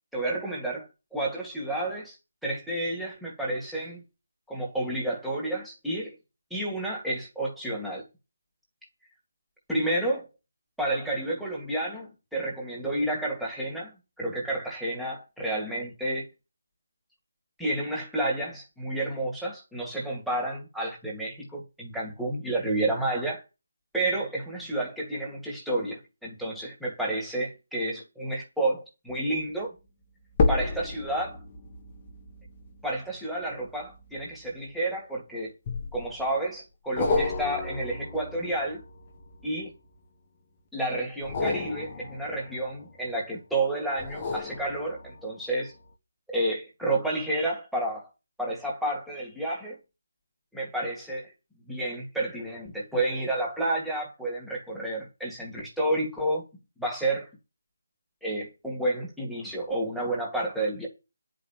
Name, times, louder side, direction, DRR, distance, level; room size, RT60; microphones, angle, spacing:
voice 1, 0.1-2.2 2.4-4.0 4.5-6.1 6.5-8.0 9.7-10.3 10.8-16.3 17.6-23.4 23.9-29.7 30.5-31.4 32.8-35.5 35.9-38.8 39.4-39.7 40.7-45.7 46.3-48.1 48.4-49.8 50.5-51.3 51.7-56.4 56.8-57.3 58.2-60.9, right 1 dB, ahead, 2.0 m, -30 dB
sound 1, 29.1-29.4 30.3-35.0 35.7-36.3 37.0-39.9 41.1-43.2 44.0-45.4 45.9-46.0, left 3 dB, 20° left, 1.6 m, -32 dB
10.5 x 5.2 x 7.4 m
figure-of-eight pair, 175°, 0 cm